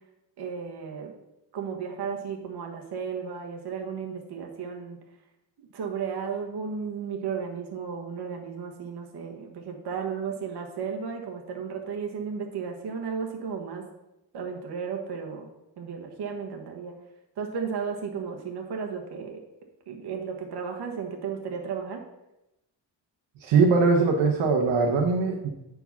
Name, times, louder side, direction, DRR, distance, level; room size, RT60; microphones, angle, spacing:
voice 1, 0.4-1.1 1.5-5.0 5.6-13.8 14.3-15.5 15.8-17.0 17.4-19.4 19.9-22.1, right 6 dB, 60° right, 2 dB, 1.2 m, -34 dB
voice 2, 23.4-25.5, right 4 dB, 75° right, 0 dB, 1.2 m, -21 dB
7.8 x 4.8 x 5.7 m, 0.92 s
cardioid pair, 115°, 45 cm